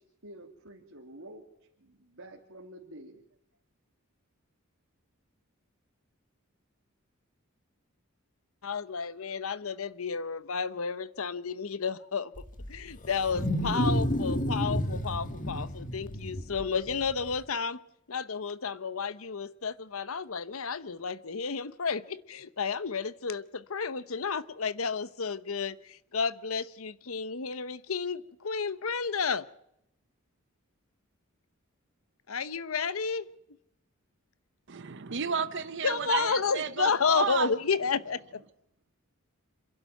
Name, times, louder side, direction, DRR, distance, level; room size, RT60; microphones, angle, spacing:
voice 1, 0.2-1.4 1.8-3.2, right 1 dB, 85° right, -2 dB, 2.8 m, -48 dB
voice 2, 8.6-12.3 12.7-17.8 18.1-29.4 32.3-33.3 35.8-38.2, left 5 dB, 85° left, 16 dB, 0.9 m, -31 dB
Wild animals, 12.4-17.4, equal, 40° left, 1.5 m, -31 dB
voice 3, 34.7-37.5, right 6 dB, 60° right, 10 dB, 0.8 m, -32 dB
27.0 x 12.0 x 9.1 m, 0.81 s
head